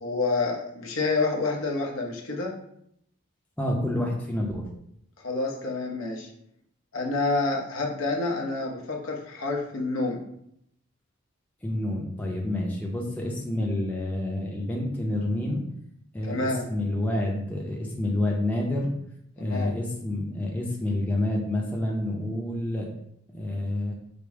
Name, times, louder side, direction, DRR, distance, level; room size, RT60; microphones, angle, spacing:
voice 1, 0.0-2.5 5.2-6.3 6.9-10.3 16.2-16.6 19.4-19.7, left 3 dB, 80° left, 0 dB, 0.9 m, -28 dB
voice 2, 3.6-4.7 11.6-15.6 16.1-18.9 19.4-22.9 23.3-23.9, left 1 dB, 5° left, -2 dB, 0.6 m, -28 dB
5.1 x 2.1 x 4.7 m, 0.74 s
head